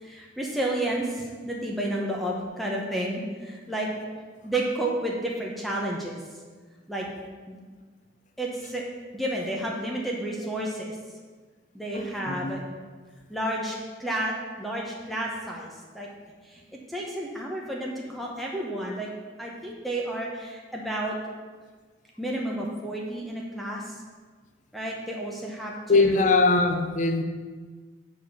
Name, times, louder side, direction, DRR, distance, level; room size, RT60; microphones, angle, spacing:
voice 1, 0.0-3.9 4.4-6.2 6.9-7.1 7.5-7.6 8.4-8.8 9.1-11.0 11.7-12.6 13.3-14.3 14.6-16.1 16.5-16.6 16.9-19.1 19.4-21.2 22.2-24.0 24.7-26.3, right 1 dB, ahead, -3 dB, 0.9 m, -31 dB
voice 2, 11.9-12.6 25.9-27.2, left 3 dB, 40° left, 6 dB, 0.6 m, -22 dB
7.4 x 4.3 x 6.8 m, 1.4 s
head